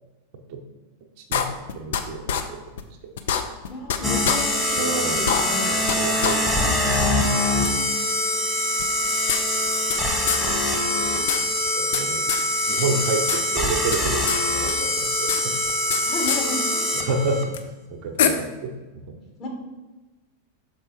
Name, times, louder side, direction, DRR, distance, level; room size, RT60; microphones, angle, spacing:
voice 1, 1.2-2.3 4.8-5.4 5.7-7.4 11.4-11.5 11.7-12.2 12.7-15.5 16.9-19.0, right 3 dB, 45° right, 3 dB, 0.8 m, -30 dB
sound 1, 1.3-2.0 2.3-2.4 2.8-2.9 3.2-4.0 4.2-4.4 4.8-4.9 5.2-6.0 6.2-6.3 6.7-6.8 7.6-7.7 8.8-10.0 10.3-10.4 10.7-10.8 11.0-12.0 12.3-12.4 12.8-13.4 13.7-14.4 14.7-16.0 16.3-16.4 17.5-17.6 18.2-18.3, left 8 dB, 55° left, 0.5 m, -25 dB
voice 2, 3.7-5.8 16.0-17.0 19.4-19.5, left 2 dB, 35° left, -1 dB, 1.7 m, -32 dB
sound 2, 4.0-17.4, left 1 dB, 5° left, 1.2 m, -23 dB
6.3 x 4.5 x 4.6 m, 1.2 s
figure-of-eight pair, 90°, 0 cm